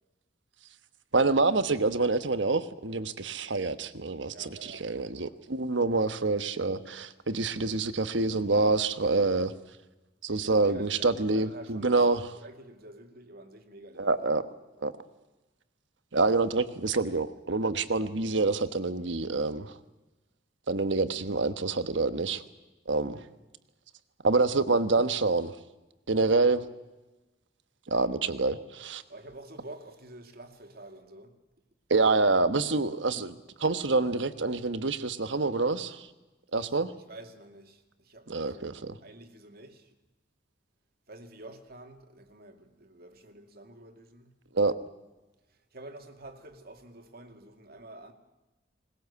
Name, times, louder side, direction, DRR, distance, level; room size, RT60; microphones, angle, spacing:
voice 1, 1.1-9.5 10.2-12.4 14.0-14.4 14.8-14.9 16.1-19.8 20.7-22.4 22.9-23.2 24.2-25.5 26.1-26.7 27.9-29.0 31.9-36.1 36.5-36.9 38.3-39.0 44.5-44.7, right 3 dB, 70° right, 1.3 m, -27 dB
voice 2, 4.3-4.8 10.4-12.1 12.4-14.1 23.2-23.3 29.1-31.3 37.1-37.8 38.1-38.6 39.0-39.8 41.1-44.3 45.7-48.1, right 1 dB, 55° right, 2.4 m, -48 dB
21.0 x 20.0 x 8.3 m
head